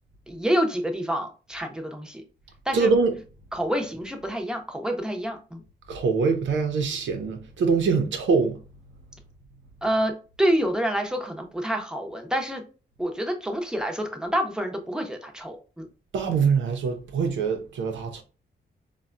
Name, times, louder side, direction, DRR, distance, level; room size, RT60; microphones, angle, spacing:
voice 1, 0.3-2.2 2.7-2.9 3.5-5.6 9.8-10.1 10.4-12.6 13.0-15.9, equal, 5° right, 0.7 m, -27 dB
voice 2, 2.7-3.1 5.9-8.6 16.1-18.2, right 5 dB, 85° right, 0.7 m, -23 dB
4.2 x 2.2 x 2.5 m
cardioid pair, 90°, 19 cm